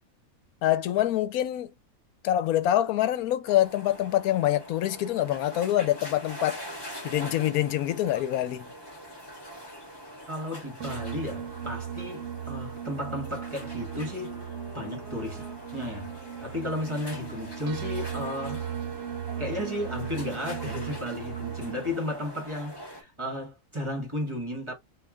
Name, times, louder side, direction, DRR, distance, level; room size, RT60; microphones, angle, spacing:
voice 1, 0.6-1.7 2.2-6.6 7.0-8.7, left 13 dB, 90° left, 1.1 m, -25 dB
sound 1, 3.4-23.0, equal, 20° left, 1.4 m, -44 dB
voice 2, 10.3-15.4 15.7-16.1 16.4-18.6 19.4-24.7, left 1 dB, 20° right, 1.3 m, -34 dB
sound 2, 10.8-21.9, right 9 dB, 65° right, 0.9 m, -37 dB
sound 3, 13.3-22.6, left 2 dB, ahead, 1.7 m, -51 dB
3.2 x 2.7 x 3.4 m
omnidirectional pair, 1.5 m